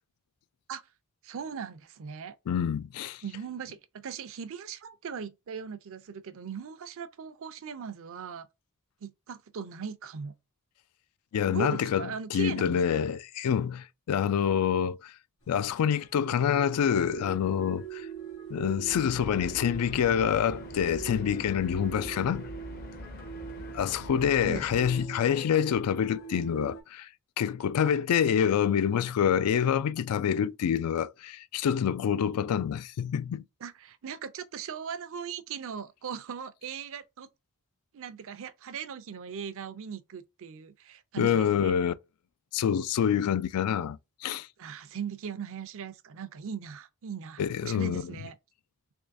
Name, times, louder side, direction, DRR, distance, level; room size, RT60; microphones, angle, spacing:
voice 1, 1.2-2.4 3.2-8.5 9.0-10.3 11.5-13.0 24.4-24.8 33.6-37.3 37.9-41.7 44.6-48.4, right 6 dB, 65° right, 0.5 m, -39 dB
voice 2, 2.5-3.2 11.3-15.1 15.5-18.1 18.5-22.5 23.7-27.1 27.4-33.4 41.2-41.9 42.5-44.5 47.4-48.0, left 8 dB, 85° left, 0.3 m, -27 dB
sound 1, 15.4-26.8, right 7 dB, 60° left, 1.2 m, -43 dB
sound 2, 18.8-25.0, left 1 dB, 45° left, 0.6 m, -43 dB
3.5 x 3.1 x 2.6 m
head